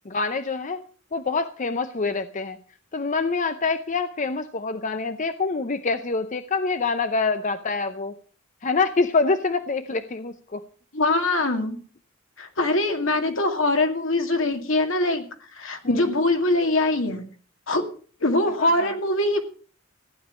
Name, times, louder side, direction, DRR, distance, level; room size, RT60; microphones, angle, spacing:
voice 1, 0.1-0.8 1.1-2.6 2.9-8.1 8.6-10.6 15.8-16.0 18.5-18.9, left 4 dB, 40° left, 10 dB, 0.7 m, -26 dB
voice 2, 10.9-11.8 12.4-15.2 15.5-17.2 17.7-17.9 18.2-19.4, left 2 dB, 70° left, 5 dB, 2.3 m, -22 dB
15.0 x 10.0 x 6.2 m, 0.42 s
head